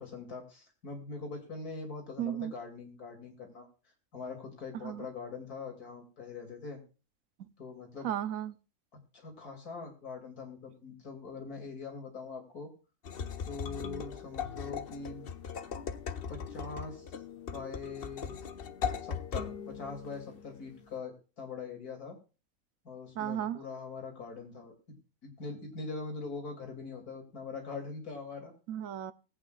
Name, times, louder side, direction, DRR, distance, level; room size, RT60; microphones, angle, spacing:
voice 1, 0.0-3.7 4.1-6.8 7.6-8.1 9.1-12.7 13.4-15.3 16.3-17.2 17.5-18.4 19.0-22.2 22.9-24.7 25.2-28.5, left 4 dB, 90° left, 2 dB, 3.5 m, -42 dB
voice 2, 2.2-2.5 4.8-5.0 8.0-8.5 23.2-23.6 28.7-29.1, right 11 dB, 65° right, 14 dB, 1.1 m, -34 dB
sound 1, 13.0-21.0, left 7 dB, 45° left, 0.9 m, -39 dB
20.0 x 8.7 x 2.5 m, 0.33 s
omnidirectional pair, 1.6 m